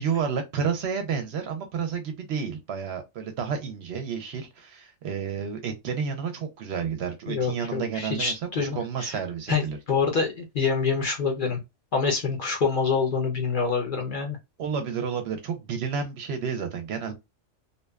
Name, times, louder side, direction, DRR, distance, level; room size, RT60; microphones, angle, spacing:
voice 1, 0.0-9.8 14.6-17.1, right 6 dB, 65° right, 0.8 m, -30 dB
voice 2, 7.3-9.2 9.5-11.6 11.9-14.4, left 5 dB, 50° left, 0.7 m, -26 dB
2.6 x 2.2 x 2.2 m
omnidirectional pair, 1.3 m